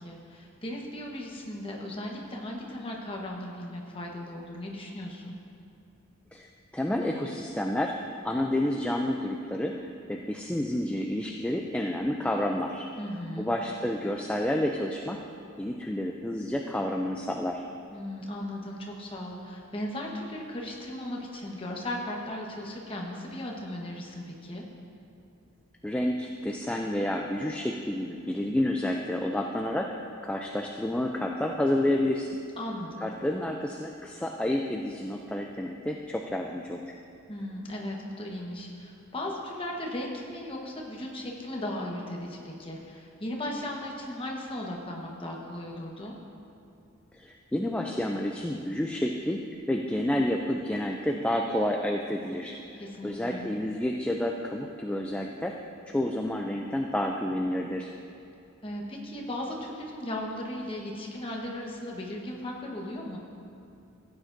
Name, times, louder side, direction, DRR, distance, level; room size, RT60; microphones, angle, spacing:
voice 1, 0.0-5.3 13.0-13.5 17.9-24.6 32.6-33.1 37.3-46.1 52.8-53.5 58.6-63.2, left 1 dB, 25° left, -1 dB, 1.2 m, -37 dB
voice 2, 6.7-8.0 8.2-9.8 10.1-12.9 13.4-15.2 15.6-17.7 25.8-29.9 30.2-32.3 33.0-36.9 47.1-49.4 49.7-52.5 53.0-55.6 55.9-57.9, left 1 dB, 5° left, 1 dB, 0.3 m, -29 dB
15.5 x 8.9 x 2.6 m, 2.7 s
head